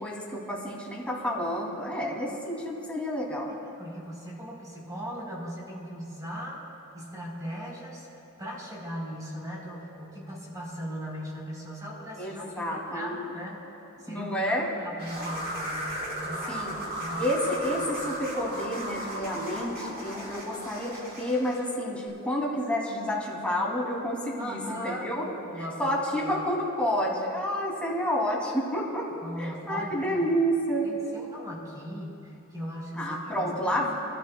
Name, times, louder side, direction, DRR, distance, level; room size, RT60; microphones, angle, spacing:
voice 1, 0.0-3.5 12.2-13.2 14.1-14.7 16.5-16.7 17.2-25.2 25.8-29.1 29.4-30.9 33.0-33.9, equal, 5° left, -4 dB, 2.6 m, -29 dB
voice 2, 3.6-6.6 6.9-8.1 8.4-13.6 14.0-14.4 14.8-17.2 17.8-18.3 24.4-26.5 29.2-30.3 30.8-33.9, equal, 15° right, -4 dB, 3.7 m, -39 dB
sound 1, 15.0-21.7, right 1 dB, 50° right, 3.0 m, -35 dB
28.5 x 13.5 x 2.3 m, 2.8 s
head